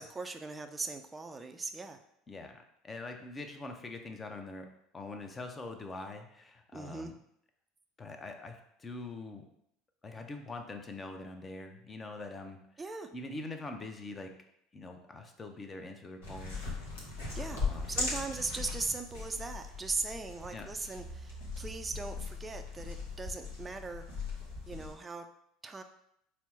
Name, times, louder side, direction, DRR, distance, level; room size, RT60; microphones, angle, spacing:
voice 1, 0.0-2.0 6.7-7.1 12.8-13.1 17.3-17.6 17.9-24.0 24.7-25.3 25.6-25.8, right 3 dB, 20° right, 6 dB, 0.4 m, -39 dB
voice 2, 2.3-4.7 4.9-7.1 8.0-9.4 10.0-12.6 13.1-14.3 14.7-16.6 17.5-18.0 20.5-20.7, left 2 dB, 25° left, 5 dB, 0.6 m, -43 dB
sound 1, 16.2-24.9, left 3 dB, 75° left, 1.0 m, -39 dB
4.3 x 2.0 x 4.2 m, 0.74 s
hypercardioid pair, 70°, 0 cm